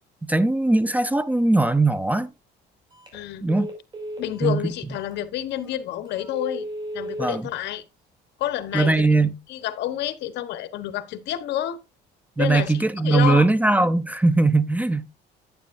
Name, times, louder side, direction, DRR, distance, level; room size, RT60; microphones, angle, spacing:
voice 1, 0.3-2.3 3.4-3.7 4.4-4.6 7.2-7.5 8.7-9.4 12.4-15.1, right 2 dB, 10° right, 0.6 m, -20 dB
Telephone, 2.9-3.2 3.5-4.6 5.1-5.2 5.6-5.7 6.2-7.3 8.5-9.1, right 1 dB, 25° right, 5.7 m, -35 dB
voice 2, 3.1-3.5 4.2-6.7 6.9-7.8 8.4-9.1 9.5-11.8 12.4-13.5, left 12 dB, 75° left, 1.2 m, -29 dB
10.5 x 9.7 x 2.6 m
cardioid pair, 120°, 18 cm